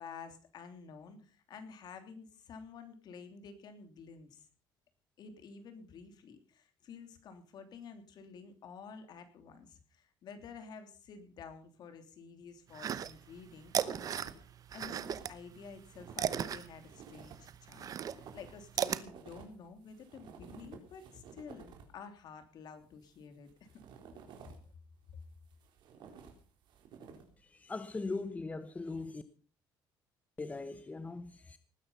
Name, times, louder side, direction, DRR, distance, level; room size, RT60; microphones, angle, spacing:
voice 1, 0.0-4.5 5.2-14.3 14.7-23.8, left 5 dB, 55° left, 3.1 m, -51 dB
sound 1, 12.7-13.4 13.7-15.3 15.7-19.0, right 9 dB, 45° right, 0.8 m, -35 dB
sound 2, 13.2-14.4 14.7-22.0 22.8-24.7 25.2-27.4, right 6 dB, 70° right, 4.0 m, -54 dB
voice 2, 27.6-29.2 30.4-31.6, left 3 dB, 15° left, 0.9 m, -40 dB
19.5 x 9.7 x 5.6 m
cardioid pair, 125°, 8 cm